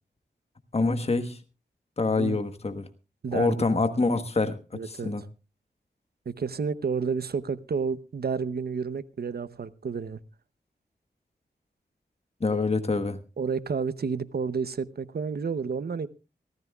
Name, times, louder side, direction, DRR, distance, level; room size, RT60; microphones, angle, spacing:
voice 1, 0.7-1.4 2.0-2.9 3.3-4.6 4.8-5.2 12.4-13.2, left 3 dB, 35° left, 9 dB, 1.3 m, -25 dB
voice 2, 3.2-3.6 4.7-5.1 6.3-10.2 13.4-16.1, right 5 dB, 60° right, 15 dB, 0.8 m, -30 dB
23.5 x 15.0 x 2.4 m, 0.31 s
wide cardioid pair, 70°, 18 cm